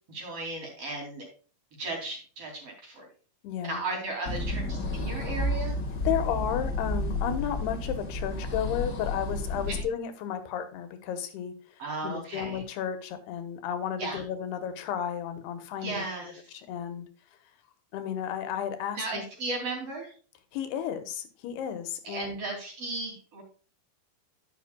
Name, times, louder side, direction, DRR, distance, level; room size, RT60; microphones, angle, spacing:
voice 1, 0.1-1.3 1.8-3.1 3.6-5.7 9.7-9.8 11.8-12.6 14.0-14.2 15.8-16.4 18.9-20.1 22.0-23.4, right 2 dB, 40° right, 0 dB, 3.5 m, -35 dB
voice 2, 3.4-3.8 6.0-17.1 17.9-19.2 20.5-22.4, left 9 dB, 85° left, 9 dB, 3.1 m, -33 dB
sound 1, 4.2-9.8, left 1 dB, 50° left, 1.3 m, -31 dB
10.5 x 8.6 x 2.3 m, 0.38 s
omnidirectional pair, 4.5 m